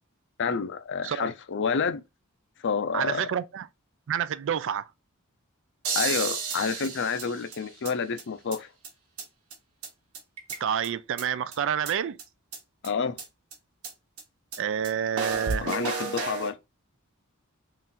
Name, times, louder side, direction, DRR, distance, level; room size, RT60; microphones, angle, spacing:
voice 1, 0.4-2.0 2.6-3.3 5.9-8.7 12.8-13.2 15.6-16.6, left 5 dB, 55° left, 0.5 m, -29 dB
voice 2, 2.9-3.7 4.1-4.9 10.6-12.2 14.6-15.7, right 8 dB, 60° right, 0.4 m, -28 dB
sound 1, 5.8-7.9 8.2-8.3 8.5-8.6 8.8-8.9 9.2-9.3 9.5-9.6 9.8-9.9 10.1-10.9 11.2-11.3 11.5-11.6 11.9-12.0 12.2-12.3 12.5-12.6 12.8-12.9 13.2-13.3 13.5-13.6 13.8-13.9 14.2-14.3 14.5-14.6 14.8-14.9 15.2-16.5, right 4 dB, 85° right, 1.3 m, -32 dB
3.8 x 2.5 x 4.1 m
head